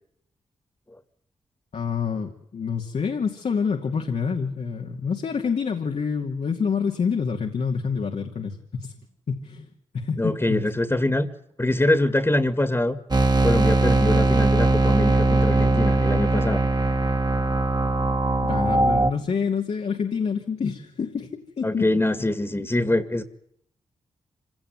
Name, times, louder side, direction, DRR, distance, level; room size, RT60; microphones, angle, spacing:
voice 1, 1.7-8.9 9.3-9.7 9.9-10.6 18.4-21.9 22.2-22.3, left 6 dB, 65° left, 2 dB, 2.5 m, -27 dB
voice 2, 10.2-11.3 11.6-13.0 13.4-16.6 21.6-23.3, left 1 dB, 20° left, 10 dB, 2.3 m, -24 dB
sound 1, 13.1-19.1, right 2 dB, 35° right, 2.1 m, -20 dB
26.0 x 17.5 x 9.5 m, 0.74 s
supercardioid pair, 45°, 12 cm